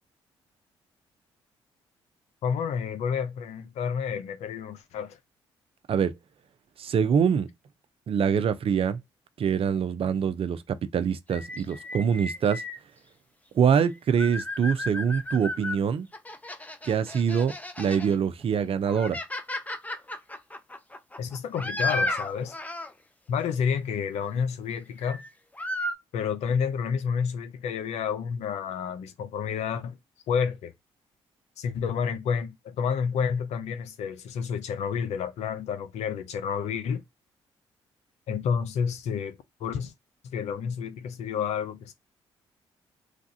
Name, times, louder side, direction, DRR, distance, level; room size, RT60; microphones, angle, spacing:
voice 1, 2.4-5.2 21.2-22.5 23.3-25.2 26.1-30.0 30.3-30.7 31.6-37.0 38.3-39.9 40.3-41.9, left 7 dB, 70° left, 0.6 m, -30 dB
voice 2, 6.8-7.5 8.1-9.0 9.4-12.6 13.5-16.1 16.8-19.2, right 7 dB, 55° right, 0.6 m, -24 dB
sound 1, 11.3-12.8 13.8-15.8 16.1-18.2 18.6-22.9 25.0-25.3 25.5-26.0, left 1 dB, 15° left, 0.6 m, -34 dB
3.3 x 2.3 x 2.7 m
hypercardioid pair, 50°, 12 cm